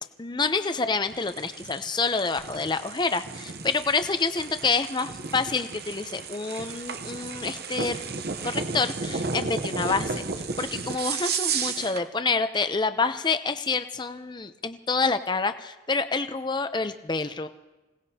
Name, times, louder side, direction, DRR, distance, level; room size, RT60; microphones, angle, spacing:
voice 1, 0.2-8.0 8.4-10.2 10.6-17.5, left 4 dB, 25° left, 10 dB, 0.6 m, -27 dB
sound 1, 1.1-12.1, right 5 dB, 55° right, 0.9 m, -33 dB
26.0 x 18.0 x 2.8 m, 1.1 s
head